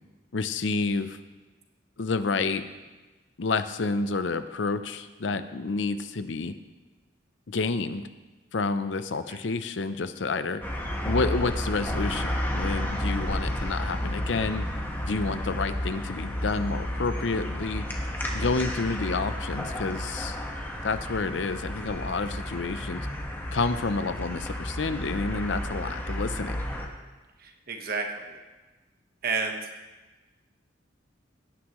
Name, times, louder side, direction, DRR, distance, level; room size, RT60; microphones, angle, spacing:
voice 1, 0.3-1.2 2.0-2.6 3.4-6.5 7.5-8.1 8.5-10.6 11.0-14.7 15.0-17.9 18.3-20.4 20.8-23.1 23.5-26.6, left 4 dB, 75° left, 11 dB, 0.6 m, -29 dB
sound 1, 10.6-26.9, equal, 10° left, 1.3 m, -32 dB
voice 2, 27.4-28.4 29.2-29.6, right 4 dB, 55° right, 4 dB, 1.2 m, -31 dB
17.5 x 9.7 x 3.1 m, 1.2 s
head